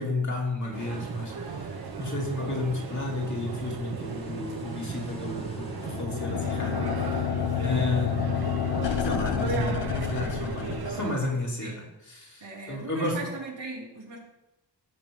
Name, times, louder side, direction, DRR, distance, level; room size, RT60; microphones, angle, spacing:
voice 1, 0.0-1.7 2.0-7.3 7.6-8.4 9.0-13.3, left 2 dB, 40° left, -2 dB, 3.0 m, -32 dB
sound 1, 0.7-11.1, right 5 dB, 60° right, 1.0 m, -36 dB
sound 2, 0.8-6.0, equal, 15° left, 1.6 m, -47 dB
sound 3, 5.7-11.3, left 9 dB, 75° left, 0.8 m, -29 dB
voice 2, 12.4-14.2, right 3 dB, 90° right, -3 dB, 3.2 m, -40 dB
16.0 x 7.0 x 3.8 m, 0.96 s
wide cardioid pair, 115°, 43 cm